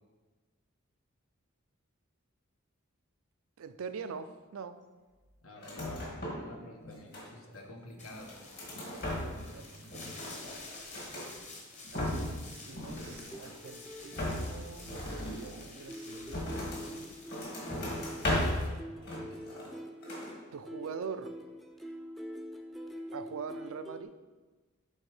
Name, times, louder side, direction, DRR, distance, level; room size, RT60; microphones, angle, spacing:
voice 1, 3.6-4.8 9.1-10.1 11.9-17.1 20.5-21.3 23.1-24.2, right 5 dB, 85° right, 11 dB, 0.4 m, -44 dB
voice 2, 5.4-8.3, left 2 dB, 75° left, 2 dB, 1.1 m, -49 dB
sound 1, 5.6-6.5 6.8-7.6 8.1-9.6 9.8-11.3 11.7-12.4 12.7-13.7 14.1-16.9 17.3-18.7 19.0-19.8 20.0-20.3, left 1 dB, 50° left, 1.8 m, -36 dB
sound 2, 8.0-18.7, left 3 dB, 35° left, 1.0 m, -50 dB
sound 3, 11.9-15.6 15.9-24.0, equal, ahead, 0.4 m, -46 dB
7.7 x 3.5 x 4.8 m, 1.3 s
head